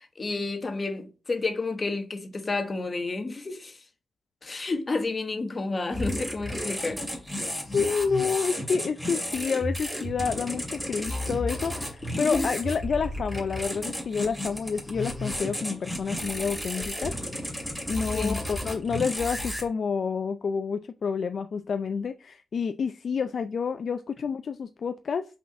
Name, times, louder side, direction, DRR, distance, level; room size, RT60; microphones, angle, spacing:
voice 1, 0.0-3.8 4.4-7.0 12.1-12.5 18.1-18.4, left 3 dB, 30° left, 1.1 m, -30 dB
sound 1, 5.9-19.6, equal, ahead, 2.3 m, -33 dB
voice 2, 7.7-17.1 17.9-25.3, left 5 dB, 55° left, 0.4 m, -29 dB
5.8 x 4.3 x 5.9 m
wide cardioid pair, 150°, 0 cm